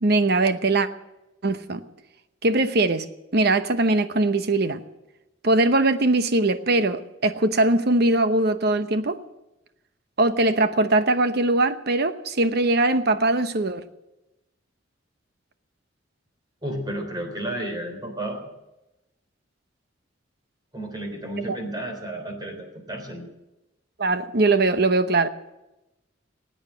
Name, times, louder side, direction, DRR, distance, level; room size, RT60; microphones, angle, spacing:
voice 1, 0.0-0.9 1.4-1.8 2.4-3.0 3.3-4.8 5.4-9.2 10.2-13.8 21.5-21.6 24.0-25.3, right 2 dB, 55° right, 10 dB, 0.9 m, -21 dB
voice 2, 16.6-18.4 20.7-23.3, right 1 dB, 20° right, 3 dB, 3.4 m, -32 dB
19.5 x 9.0 x 7.6 m, 0.96 s
head